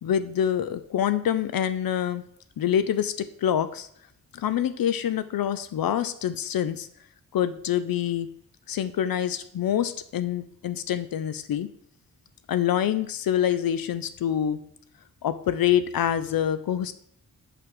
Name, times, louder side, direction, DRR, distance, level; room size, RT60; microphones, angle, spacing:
voice 1, 0.0-2.2 2.6-3.9 4.3-6.9 7.3-8.3 8.7-11.7 12.5-14.6 15.2-16.9, left 10 dB, 75° left, 12 dB, 0.5 m, -26 dB
5.9 x 5.1 x 6.5 m, 0.67 s
wide cardioid pair, 100°, 35 cm